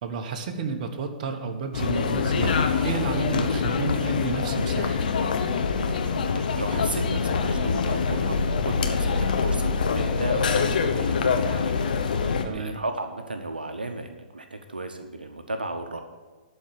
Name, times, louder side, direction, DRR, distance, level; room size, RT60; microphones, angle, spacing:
voice 1, 0.0-5.0 12.4-12.8, right 5 dB, 50° right, 4 dB, 1.2 m, -31 dB
sound 1, 1.7-12.5, left 5 dB, 65° left, 1.0 m, -25 dB
voice 2, 6.3-8.4 8.6-11.9 12.1-16.0, right 2 dB, 85° right, 6 dB, 1.0 m, -35 dB
12.5 x 4.5 x 8.5 m, 1.3 s
figure-of-eight pair, 120°, 5 cm